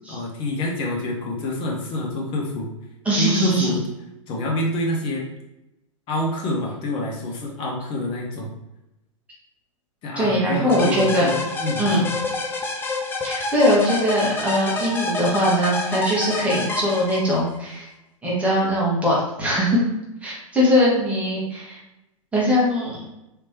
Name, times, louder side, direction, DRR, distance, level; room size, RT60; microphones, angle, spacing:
voice 1, 0.1-2.7 3.2-3.8 4.3-5.3 6.1-8.5 10.0-12.1, left 1 dB, 30° left, 0 dB, 0.9 m, -27 dB
voice 2, 3.0-3.7 10.2-11.3 11.8-12.1 13.2-17.9 18.2-19.8 20.2-21.8 22.3-23.0, equal, 5° right, -7 dB, 1.2 m, -21 dB
sound 1, 10.7-17.6, left 3 dB, 15° left, 0.4 m, -28 dB
3.5 x 3.0 x 2.8 m, 0.93 s
figure-of-eight pair, 105°, 17 cm